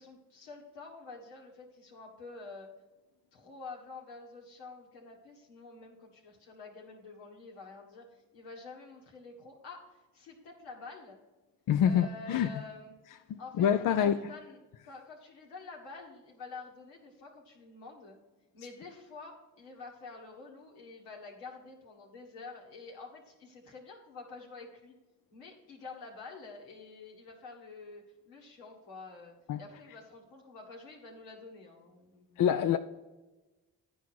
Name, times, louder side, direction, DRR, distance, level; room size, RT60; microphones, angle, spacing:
voice 1, 0.0-2.7 3.3-11.2 11.8-12.9 13.4-18.2 18.5-24.9 25.3-32.4, left 3 dB, 85° left, 1.6 m, -48 dB
voice 2, 11.7-12.5 13.6-14.2 29.5-29.6 32.4-32.8, left 9 dB, 55° left, 0.5 m, -25 dB
10.0 x 4.7 x 6.0 m
hypercardioid pair, 40°, 39 cm